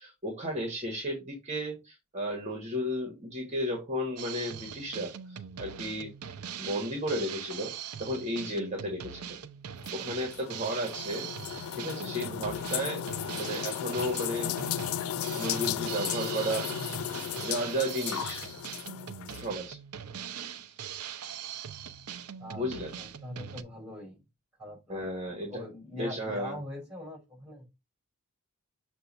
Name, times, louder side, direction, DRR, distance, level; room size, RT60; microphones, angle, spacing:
voice 1, 0.0-6.1 6.6-7.7 8.0-9.4 9.9-13.0 13.3-14.5 15.1-16.9 17.4-18.4 19.3-19.8 22.6-22.9 24.9-25.6 25.9-26.6, equal, 30° right, 1.6 m, -34 dB
Drum kit, 4.2-23.6, right 8 dB, 85° right, 0.6 m, -41 dB
sound 1, 9.8-19.5, left 9 dB, 70° left, 0.4 m, -35 dB
voice 2, 23.0-24.2 24.6-27.7, left 1 dB, 5° right, 4.5 m, -42 dB
6.8 x 2.6 x 5.3 m
head